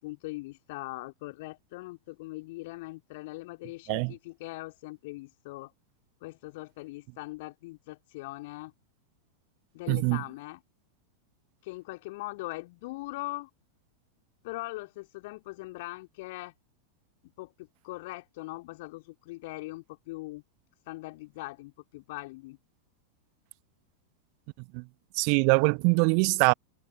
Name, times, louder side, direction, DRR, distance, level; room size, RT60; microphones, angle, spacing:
voice 1, 0.0-5.7 6.2-8.7 9.7-10.6 11.6-13.5 14.4-16.5 17.4-20.4 20.9-22.6, left 21 dB, 50° left, 3.5 m, -41 dB
voice 2, 9.9-10.2 24.7-24.9 25.1-26.5, right 40 dB or more, 45° right, 1.2 m, -23 dB
figure-of-eight pair, 90°, 0 cm